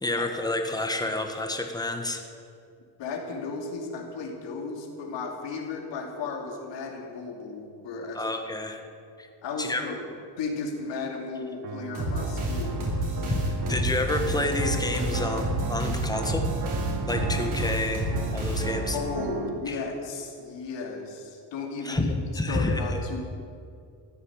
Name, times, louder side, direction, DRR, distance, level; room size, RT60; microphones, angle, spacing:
voice 1, 0.0-2.2 8.1-8.8 9.2-9.3 9.6-9.8 13.3-13.4 13.7-16.5 17.1-19.0 19.7-19.8 21.8-23.0, left 2 dB, 10° left, 4 dB, 1.6 m, -29 dB
voice 2, 3.0-8.2 9.4-10.0 10.4-13.5 18.9-22.1 22.5-23.2, left 4 dB, 85° left, 2 dB, 2.8 m, -35 dB
sound 1, 11.6-19.6, right 6 dB, 65° right, 1.3 m, -36 dB
sound 2, 11.9-19.1, right 1 dB, 45° right, 4.2 m, -30 dB
14.5 x 9.8 x 8.9 m, 2.4 s
cardioid pair, 135°, 42 cm